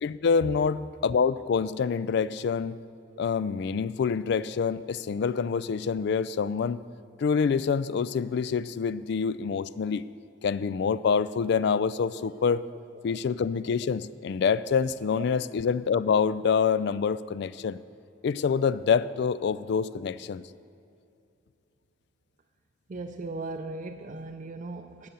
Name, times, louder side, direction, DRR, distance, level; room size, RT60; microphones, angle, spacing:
voice 1, 0.0-2.8 3.2-6.8 7.2-10.0 10.4-12.6 13.0-17.8 18.2-20.4, left 6 dB, 60° left, 17 dB, 0.3 m, -26 dB
voice 2, 22.9-25.1, right 2 dB, 40° right, 4 dB, 0.4 m, -37 dB
11.5 x 7.9 x 7.0 m, 2.6 s
head